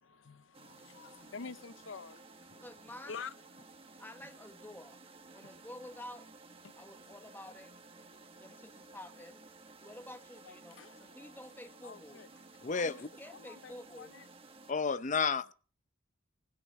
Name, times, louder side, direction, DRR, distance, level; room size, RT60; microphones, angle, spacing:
voice 1, 0.0-2.3 3.1-3.3 6.6-6.7 8.1-8.3 10.4-11.3 11.8-12.3 12.8-14.2, left 5 dB, 80° left, 0.6 m, -48 dB
sound 1, 0.5-14.7, right 3 dB, 30° right, 1.1 m, -55 dB
voice 2, 2.6-3.2 4.0-5.0 5.3-6.3 6.8-7.7 8.3-9.5 9.8-12.2 12.7-14.1, left 1 dB, 10° left, 1.1 m, -50 dB
voice 3, 12.6-13.1 14.7-15.5, left 5 dB, 40° left, 0.6 m, -31 dB
16.0 x 9.3 x 5.5 m
head